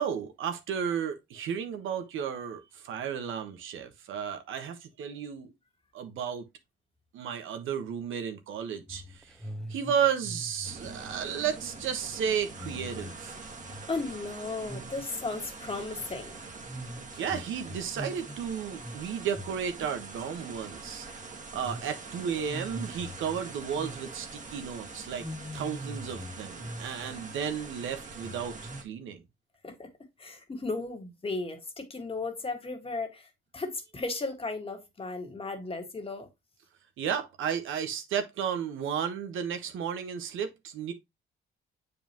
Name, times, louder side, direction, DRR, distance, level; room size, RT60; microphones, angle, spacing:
voice 1, 0.0-5.5 5.9-6.5 7.1-9.4 9.7-13.4 17.2-21.1 21.5-25.3 25.5-28.5 28.8-29.2 37.0-40.9, right 8 dB, 80° right, 1.3 m, -33 dB
sound 1, 8.9-14.3 14.6-15.1 15.4-20.2 20.6-21.0 21.5-21.9 22.3-24.4 24.6-24.8 25.2-27.2 27.5-27.6 28.2-28.8, equal, 5° left, 0.9 m, -43 dB
sound 2, 10.6-28.8, right 3 dB, 40° right, 1.8 m, -44 dB
voice 2, 13.9-16.4 29.6-29.9 30.2-36.3, left 3 dB, 30° left, 1.9 m, -35 dB
7.3 x 5.0 x 3.0 m
cardioid pair, 90°, 20 cm